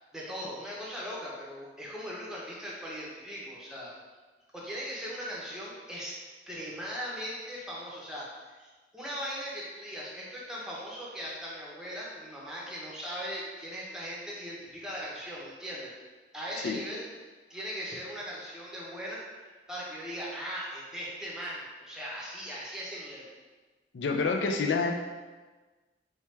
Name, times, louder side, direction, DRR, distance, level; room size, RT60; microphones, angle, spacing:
voice 1, 0.1-3.9 4.5-6.1 6.5-15.9 16.3-17.0 17.5-23.3, equal, 5° right, -5 dB, 0.6 m, -39 dB
voice 2, 23.9-24.9, left 4 dB, 80° left, 3 dB, 0.4 m, -27 dB
4.4 x 2.3 x 3.1 m, 1.3 s
head